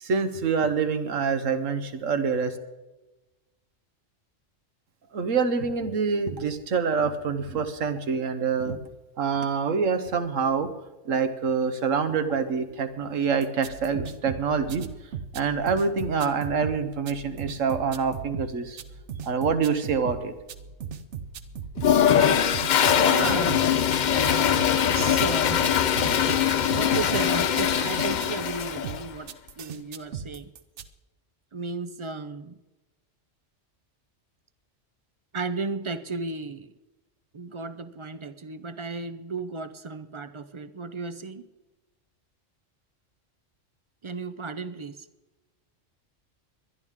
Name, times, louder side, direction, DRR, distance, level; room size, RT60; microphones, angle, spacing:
voice 1, 0.0-2.5 5.1-8.8 9.2-10.7 11.1-14.8 15.3-18.8 19.2-20.3, right 5 dB, 90° right, 1.5 m, -26 dB
sound 1, 13.4-30.9, right 7 dB, 70° right, 1.0 m, -38 dB
Toilet flush, 21.8-29.0, left 9 dB, 55° left, 0.5 m, -22 dB
voice 2, 23.0-23.6 24.6-25.7 26.7-30.5 31.5-32.6 35.3-36.7 37.3-41.5 44.0-45.1, right 4 dB, 45° right, 0.4 m, -34 dB
22.0 x 11.0 x 3.7 m
omnidirectional pair, 1.3 m